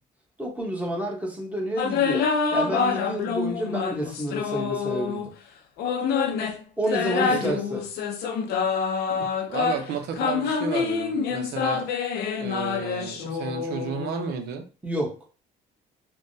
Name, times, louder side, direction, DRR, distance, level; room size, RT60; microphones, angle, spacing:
voice 1, 0.4-5.3 6.8-7.8 14.8-15.2, right 1 dB, 10° right, -2 dB, 1.0 m, -29 dB
sound 1, 1.8-5.3 5.8-14.3, left 6 dB, 70° left, 0.5 m, -27 dB
voice 2, 7.3-7.6 9.1-11.9 12.4-14.7, right 6 dB, 75° right, 5 dB, 0.6 m, -32 dB
3.4 x 2.1 x 2.6 m, 0.34 s
cardioid pair, 110°, 17 cm